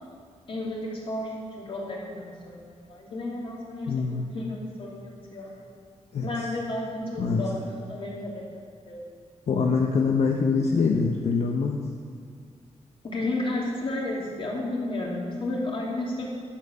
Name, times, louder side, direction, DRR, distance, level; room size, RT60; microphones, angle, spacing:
voice 1, 0.5-5.5 6.2-9.2 13.0-16.3, left 2 dB, 45° left, -3 dB, 2.8 m, -32 dB
voice 2, 3.9-4.2 6.1-6.2 7.2-7.4 9.5-11.8, left 5 dB, 70° left, 0 dB, 0.9 m, -24 dB
11.5 x 7.6 x 6.8 m, 2.1 s
wide cardioid pair, 145°, 12 cm